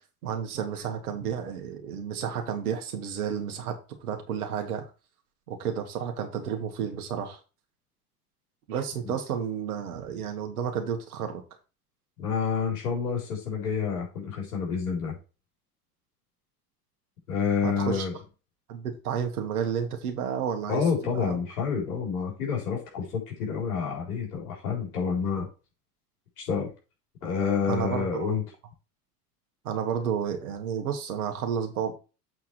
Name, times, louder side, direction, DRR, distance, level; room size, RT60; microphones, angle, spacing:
voice 1, 0.2-4.9 5.5-7.4 8.7-11.4 17.6-18.1 18.7-20.8 21.1-21.4 27.7-28.4 29.6-31.9, right 8 dB, 65° right, 5 dB, 2.1 m, -31 dB
voice 2, 12.2-15.2 17.3-18.2 20.7-25.5 26.4-26.7 27.2-28.4, left 6 dB, 65° left, -1 dB, 4.2 m, -28 dB
8.0 x 4.6 x 4.5 m, 0.32 s
figure-of-eight pair, 85°, 47 cm